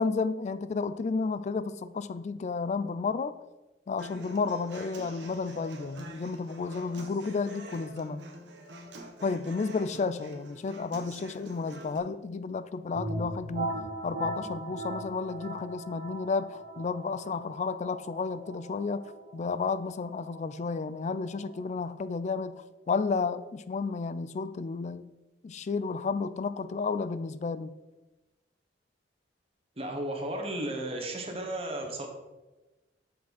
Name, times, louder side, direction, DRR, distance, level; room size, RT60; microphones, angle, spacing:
voice 1, 0.0-3.4 3.9-8.3 9.2-25.1 25.4-27.7, left 4 dB, 40° left, 14 dB, 0.3 m, -32 dB
Human voice / Acoustic guitar, 4.0-12.0, right 1 dB, 75° right, 1.2 m, -46 dB
sound 1, 12.9-22.5, right 2 dB, 55° right, 1.3 m, -39 dB
voice 2, 29.8-32.1, right 1 dB, 35° right, 1 dB, 1.3 m, -34 dB
7.1 x 6.0 x 4.2 m, 1.1 s
head